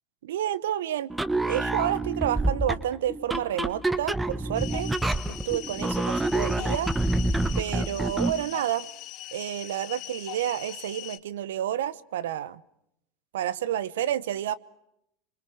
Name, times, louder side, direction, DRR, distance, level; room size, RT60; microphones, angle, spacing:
voice 1, 0.2-1.1 1.4-4.9 5.3-6.9 7.6-8.9 9.3-12.6 13.3-14.6, right 11 dB, 80° right, 0.9 m, -30 dB
sound 1, 1.1-8.4, right 2 dB, 10° right, 1.0 m, -28 dB
sound 2, 4.5-11.2, left 16 dB, 50° left, 1.4 m, -41 dB
27.5 x 25.0 x 6.3 m
hypercardioid pair, 100°, 0 cm